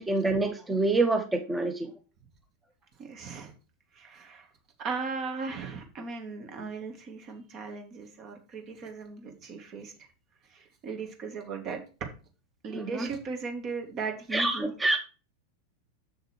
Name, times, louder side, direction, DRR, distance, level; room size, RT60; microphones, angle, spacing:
voice 1, 0.0-1.9 12.7-13.1 14.3-15.0, right 2 dB, 10° right, 5 dB, 1.5 m, -26 dB
voice 2, 3.0-3.5 3.9-4.5 4.8-10.1 10.5-11.8 12.6-14.7, right 4 dB, 35° right, 4 dB, 2.3 m, -37 dB
7.5 x 6.6 x 4.5 m, 0.33 s
figure-of-eight pair, 90°, 0 cm